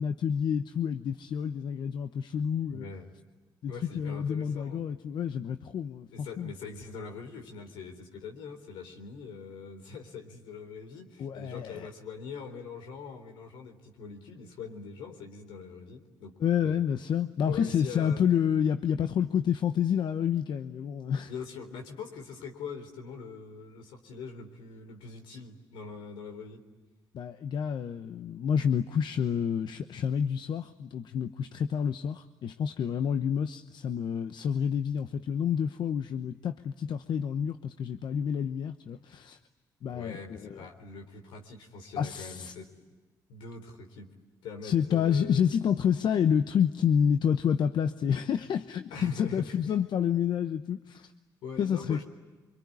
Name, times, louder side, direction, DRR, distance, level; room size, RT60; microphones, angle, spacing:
voice 1, 0.0-2.8 3.6-6.5 11.2-11.9 16.4-21.3 27.1-39.4 39.8-40.7 42.0-42.5 44.6-51.1 51.6-52.0, left 8 dB, 65° left, 10 dB, 0.9 m, -29 dB
voice 2, 2.7-3.1 3.7-4.9 6.1-16.3 16.6-16.8 17.4-18.3 21.3-26.6 39.9-42.7 43.3-44.1 44.4-45.4 48.9-49.8 50.9-51.0 51.4-52.0, left 5 dB, 85° left, 5 dB, 3.7 m, -43 dB
25.5 x 24.5 x 9.6 m, 1.3 s
supercardioid pair, 65°, 8 cm